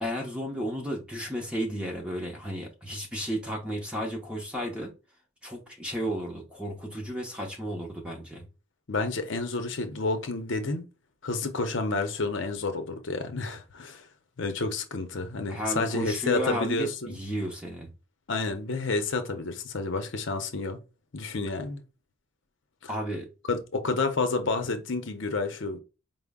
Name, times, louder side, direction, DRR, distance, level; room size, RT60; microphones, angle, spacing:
voice 1, 0.0-4.9 5.4-8.4 15.5-17.9 22.9-23.3, equal, 5° right, 0.7 m, -33 dB
voice 2, 8.9-10.8 11.2-14.0 14.4-17.1 18.3-20.8 21.1-21.8 22.8-22.9 23.5-25.8, left 3 dB, 65° left, 0.7 m, -30 dB
4.8 x 2.0 x 3.5 m
head